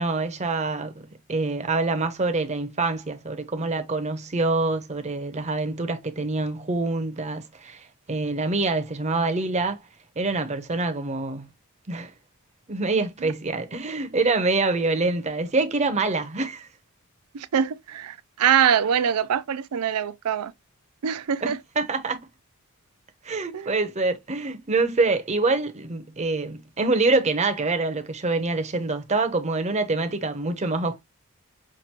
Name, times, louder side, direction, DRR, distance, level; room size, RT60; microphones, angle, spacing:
voice 1, 0.0-9.8 10.2-11.5 11.9-12.1 12.7-16.7 21.4-22.2 23.2-31.0, right 3 dB, 30° right, 0.7 m, -25 dB
voice 2, 17.3-20.5 21.0-21.6 23.5-23.7, right 8 dB, 85° right, 0.4 m, -24 dB
5.9 x 2.5 x 2.9 m
head